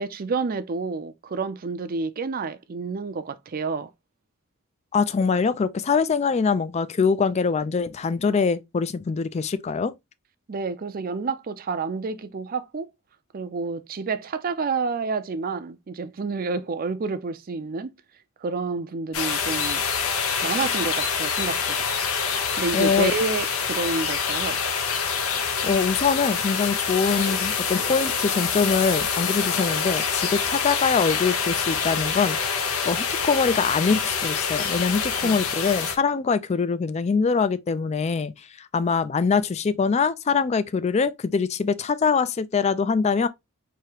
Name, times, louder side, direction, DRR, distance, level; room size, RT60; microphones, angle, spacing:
voice 1, 0.0-3.9 10.5-12.9 13.3-17.9 18.4-19.8 20.4-21.9 22.6-24.6 35.2-35.5, right 4 dB, 40° right, 0.4 m, -29 dB
voice 2, 4.9-9.9 22.7-23.1 25.6-43.3, left 5 dB, 30° left, 0.3 m, -23 dB
sound 1, 19.1-36.0, left 6 dB, 80° left, 0.8 m, -26 dB
4.7 x 2.8 x 2.9 m
head